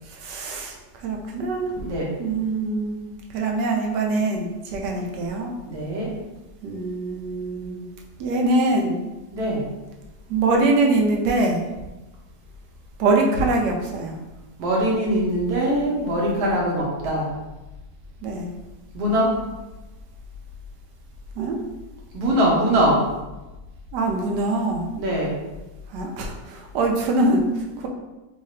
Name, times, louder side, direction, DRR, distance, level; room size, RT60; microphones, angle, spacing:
voice 1, 0.1-1.7 2.2-3.0 3.3-5.5 6.6-7.9 8.2-9.0 10.3-11.6 13.0-14.2 18.2-18.5 21.4-21.6 23.9-24.9 25.9-27.9, right 2 dB, 90° right, 1 dB, 1.2 m, -23 dB
voice 2, 5.7-6.1 9.3-9.6 14.6-17.3 18.9-19.3 22.1-23.0 25.0-25.4, right 1 dB, 70° right, -3 dB, 1.4 m, -22 dB
3.2 x 3.2 x 2.7 m, 1.1 s
omnidirectional pair, 1.8 m